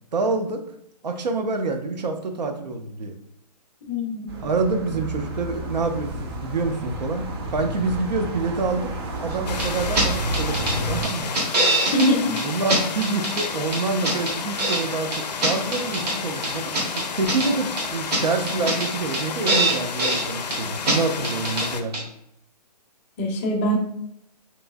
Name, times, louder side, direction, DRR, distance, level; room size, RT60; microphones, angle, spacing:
voice 1, 0.1-0.6 1.0-3.1 4.4-7.2 7.5-8.9 9.2-11.4 12.4-21.9, right 3 dB, 90° right, 5 dB, 0.5 m, -27 dB
voice 2, 3.9-4.4 11.9-12.4 23.2-23.8, equal, 20° left, 1 dB, 0.4 m, -22 dB
sound 1, 4.3-11.0, right 1 dB, 40° right, 0.5 m, -30 dB
sound 2, 9.5-21.8, left 6 dB, 80° left, 0.4 m, -32 dB
sound 3, 9.6-9.7 10.0-10.1 10.3-10.8 11.0-12.1 12.4-12.5 12.7-13.5 13.7-14.8 15.1-16.2 16.4-17.5 17.8-17.9 18.1-18.2 18.5-18.9 19.1-19.2 19.5-20.2 20.5-20.6 20.9-21.0 21.2-21.7 21.9-22.0, right 2 dB, 70° right, 1.0 m, -23 dB
3.0 x 2.7 x 2.2 m, 0.74 s
hypercardioid pair, 145°, 21 cm